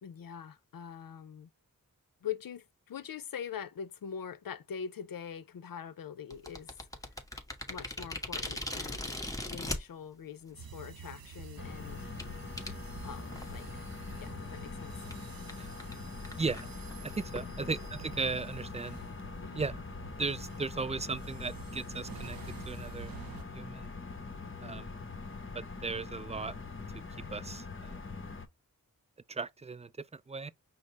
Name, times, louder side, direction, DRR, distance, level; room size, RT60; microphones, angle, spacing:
voice 1, 0.0-1.5 2.2-6.7 7.7-12.1 13.0-13.8 14.2-14.9 17.4-17.7 19.4-19.6 24.4-24.9, left 8 dB, 80° left, 0.6 m, -43 dB
sound 1, 6.3-9.8 10.6-10.7 11.2-11.4 12.2-12.3 12.6-12.7 13.3-13.8 14.1-14.2 14.5-14.6 15.1-15.2 15.5-15.6 15.8-15.9 16.2-17.9, left 1 dB, 10° left, 1.3 m, -39 dB
sound 2, 10.5-23.4, right 7 dB, 85° right, 0.6 m, -49 dB
sound 3, 11.6-28.5, left 4 dB, 35° left, 1.0 m, -43 dB
voice 2, 16.4-16.7 17.0-19.0 19.5-19.8 20.1-22.4 22.7-23.1 23.5-23.9 24.6-24.9 25.5-26.5 27.3-27.9 29.3-30.5, right 4 dB, 20° right, 0.4 m, -36 dB
5.2 x 2.1 x 4.5 m
cardioid pair, 50°, 34 cm